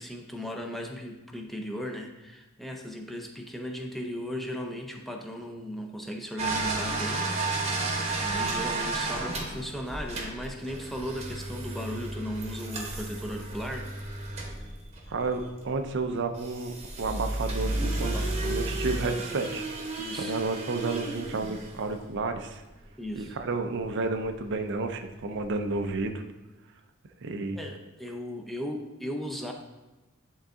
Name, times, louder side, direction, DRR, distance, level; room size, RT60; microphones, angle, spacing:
voice 1, 0.0-7.8 8.2-13.9 18.0-18.6 20.0-20.3 23.0-23.4 27.5-29.5, equal, ahead, 2 dB, 0.6 m, -37 dB
sound 1, 6.4-15.7 16.3-22.3 23.8-23.9 24.2-24.3 25.4-25.5 25.7-25.9, right 2 dB, 30° right, 1.0 m, -32 dB
voice 2, 15.1-19.7 20.1-22.6 23.2-26.2 27.2-27.6, right 3 dB, 60° right, 7 dB, 0.5 m, -31 dB
10.0 x 3.8 x 3.6 m, 1.1 s
head